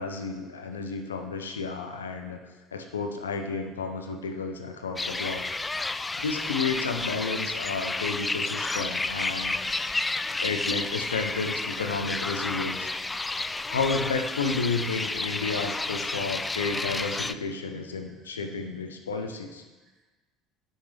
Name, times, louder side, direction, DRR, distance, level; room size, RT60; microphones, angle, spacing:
voice 1, 0.0-2.4 2.7-5.4 6.2-12.9 13.7-19.6, left 4 dB, 80° left, 6 dB, 0.7 m, -32 dB
sound 1, 5.0-17.3, left 3 dB, 15° left, 0.3 m, -31 dB
voice 2, 18.1-18.4 19.8-20.0, right 3 dB, 45° right, -1 dB, 2.1 m, -66 dB
11.0 x 6.3 x 3.4 m, 1.2 s
figure-of-eight pair, 60°, 0 cm